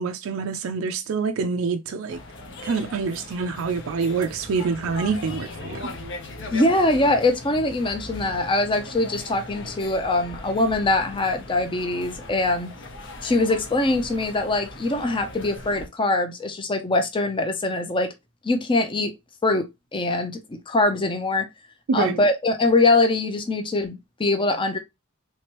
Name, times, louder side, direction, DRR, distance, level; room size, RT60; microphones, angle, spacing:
voice 1, 0.0-2.2 2.6-5.9 21.9-22.2, right 5 dB, 70° right, 0.4 m, -26 dB
sound 1, 2.1-15.9, left 2 dB, 60° left, 0.9 m, -39 dB
voice 2, 6.5-12.7 13.2-18.1 18.4-19.1 19.4-19.7 19.9-21.5 21.9-24.8, left 2 dB, 25° left, 0.6 m, -23 dB
3.4 x 2.9 x 3.0 m
head